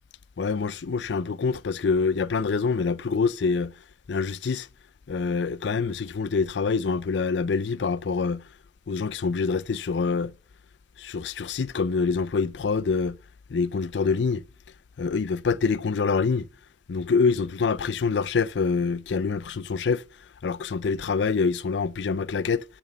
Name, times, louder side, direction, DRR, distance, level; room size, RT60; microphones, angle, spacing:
voice 1, 0.4-3.8 4.1-4.7 5.1-8.5 8.9-10.3 11.0-13.2 13.5-14.4 15.0-16.5 16.9-20.0 20.4-22.6, left 5 dB, 75° left, 0.5 m, -25 dB
11.0 x 6.2 x 5.6 m
head